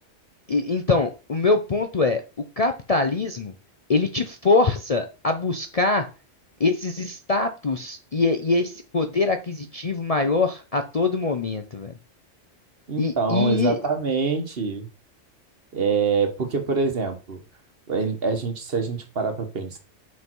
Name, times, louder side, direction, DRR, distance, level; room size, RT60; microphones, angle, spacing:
voice 1, 0.5-2.2 2.6-3.5 3.9-6.0 6.6-11.9 13.0-13.8, left 3 dB, 40° left, 6 dB, 0.6 m, -23 dB
voice 2, 12.9-14.9 15.7-17.4 17.9-19.8, right 5 dB, 50° right, 7 dB, 1.4 m, -25 dB
6.3 x 5.5 x 4.5 m, 0.31 s
omnidirectional pair, 1.3 m